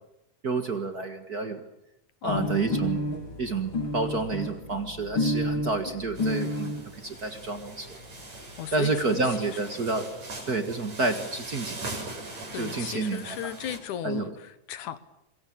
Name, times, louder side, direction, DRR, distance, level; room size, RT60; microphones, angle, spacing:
voice 1, 0.4-1.6 2.2-3.1 3.4-8.0 8.7-10.1 10.5-12.0 12.5-13.5 14.0-14.3, right 3 dB, 35° right, 8 dB, 1.9 m, -29 dB
voice 2, 2.2-2.7 8.6-9.6 12.5-15.0, left 10 dB, 80° left, 14 dB, 2.8 m, -36 dB
sound 1, 2.3-6.9 7.7-7.8 8.0-8.1 8.4-8.5 8.7-9.3, left 1 dB, 40° left, 4.0 m, -30 dB
sound 2, 6.2-13.8, right 2 dB, 55° right, 8.1 m, -41 dB
26.0 x 23.0 x 8.8 m, 0.82 s
omnidirectional pair, 3.5 m